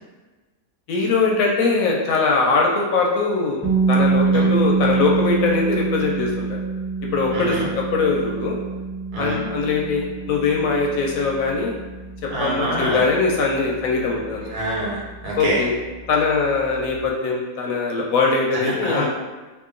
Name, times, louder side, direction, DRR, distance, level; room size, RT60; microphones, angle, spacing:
voice 1, 0.9-6.6 7.1-8.6 9.2-11.7 12.4-14.6 15.4-15.7 16.1-19.1, left 4 dB, 70° left, -1 dB, 0.9 m, -21 dB
sound 1, 3.6-15.5, right 4 dB, 10° left, 0.6 m, -25 dB
voice 2, 7.3-7.7 9.1-9.4 12.3-13.0 14.5-15.6 18.5-19.1, right 1 dB, 80° right, -5 dB, 1.5 m, -26 dB
2.9 x 2.5 x 3.7 m, 1.3 s
omnidirectional pair, 1.6 m